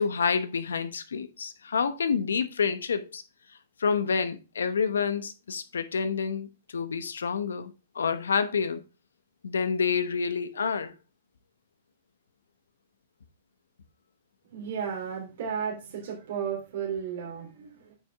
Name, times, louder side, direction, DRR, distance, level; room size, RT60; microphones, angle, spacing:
voice 1, 0.0-3.2 3.8-6.5 6.7-8.8 9.4-10.9, left 6 dB, 85° left, 0.9 m, -28 dB
voice 2, 14.5-17.9, right 7 dB, 65° right, 3.2 m, -34 dB
8.6 x 5.4 x 3.5 m
hypercardioid pair, 125°, 0 cm